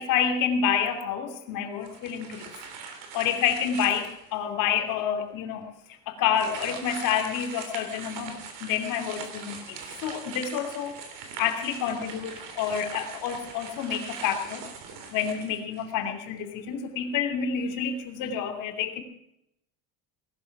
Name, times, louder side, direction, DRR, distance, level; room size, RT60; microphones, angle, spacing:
voice 1, 0.0-2.5 3.1-5.7 6.1-11.0 11.4-14.7 15.1-19.0, left 8 dB, 60° left, 5 dB, 3.0 m, -28 dB
sound 1, 1.8-4.4 4.9-5.0 6.3-16.1, right 5 dB, 60° right, 3.6 m, -41 dB
19.0 x 11.5 x 6.1 m, 0.82 s
cardioid pair, 145°, 37 cm